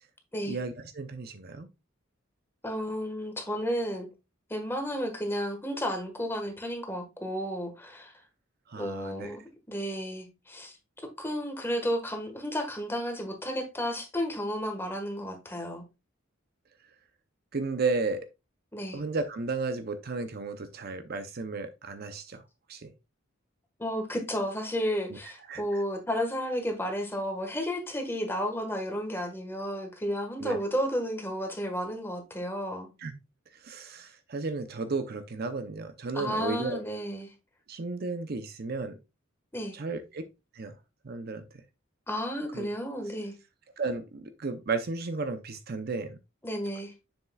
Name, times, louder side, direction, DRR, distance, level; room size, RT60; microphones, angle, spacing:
voice 1, 0.5-1.7 8.7-9.3 17.5-18.3 18.9-22.4 22.7-22.9 25.5-25.8 30.4-30.6 33.0-33.1 33.6-36.8 37.7-38.9 39.7-40.2 40.5-40.7 41.0-41.5 42.5-42.7 43.8-46.2, right 3 dB, 50° right, 0.6 m, -33 dB
voice 2, 2.6-4.1 4.5-8.1 8.8-9.4 9.7-10.7 11.2-15.8 18.7-19.0 23.8-32.9 36.1-37.3 39.5-39.8 42.1-43.3 46.4-46.9, equal, 10° left, 1.4 m, -32 dB
7.2 x 6.4 x 2.3 m
head